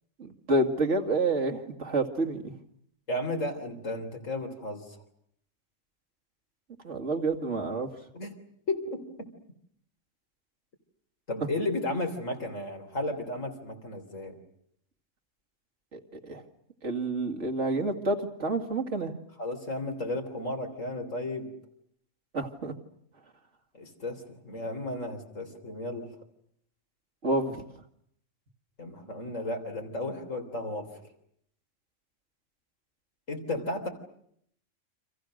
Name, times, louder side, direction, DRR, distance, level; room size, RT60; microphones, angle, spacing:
voice 1, 0.2-2.5 6.8-7.9 15.9-16.4 16.8-19.1 22.3-22.7 27.2-27.6, right 2 dB, 65° right, 4 dB, 2.7 m, -28 dB
voice 2, 3.1-5.0 8.1-8.3 8.7-9.0 11.3-14.4 19.4-21.5 23.7-26.2 28.8-30.9 33.3-33.9, left 2 dB, 80° left, 4 dB, 4.1 m, -34 dB
30.0 x 26.5 x 6.5 m, 0.69 s
omnidirectional pair, 1.3 m